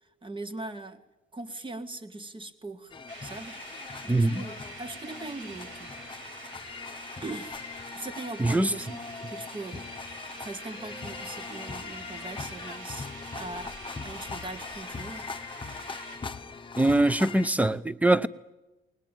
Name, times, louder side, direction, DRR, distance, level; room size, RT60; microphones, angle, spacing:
voice 1, 0.2-1.0 1.3-2.9 3.2-3.6 4.0-5.9 7.2-7.6 8.0-9.8 10.4-13.1 13.3-15.3, right 2 dB, 25° right, 1.9 m, -40 dB
sound 1, 2.9-17.5, left 4 dB, 25° left, 1.1 m, -41 dB
sound 2, 3.1-16.2, right 2 dB, 80° right, 7.9 m, -46 dB
voice 2, 4.1-4.4 8.4-8.7 16.8-18.3, right 2 dB, 5° right, 0.8 m, -23 dB
20.5 x 20.0 x 9.1 m
cardioid pair, 90°, 20 cm